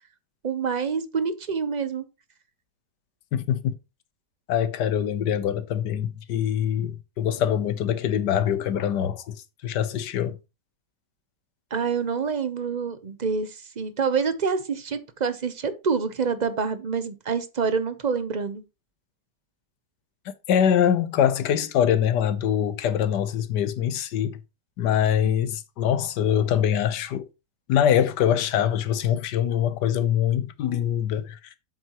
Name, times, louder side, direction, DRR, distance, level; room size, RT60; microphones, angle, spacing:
voice 1, 0.4-2.0 11.7-18.6, right 5 dB, 40° right, 0.6 m, -27 dB
voice 2, 3.3-3.7 4.5-9.4 9.6-10.4 20.5-24.4 24.8-27.2 27.7-31.4, left 9 dB, 80° left, 1.4 m, -23 dB
7.9 x 7.8 x 3.0 m
omnidirectional pair, 1.8 m